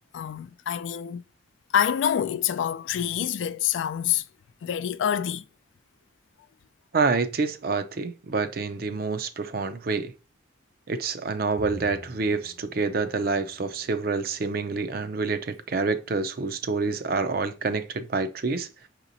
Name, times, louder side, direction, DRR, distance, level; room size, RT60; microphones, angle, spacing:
voice 1, 0.1-1.2 1.7-4.2 4.6-5.4, left 9 dB, 75° left, 0.3 m, -26 dB
voice 2, 6.9-10.1 10.9-18.7, right 4 dB, 50° right, 0.5 m, -27 dB
Bowed string instrument, 11.6-15.0, left 1 dB, 20° left, 0.5 m, -48 dB
5.8 x 2.9 x 2.6 m
head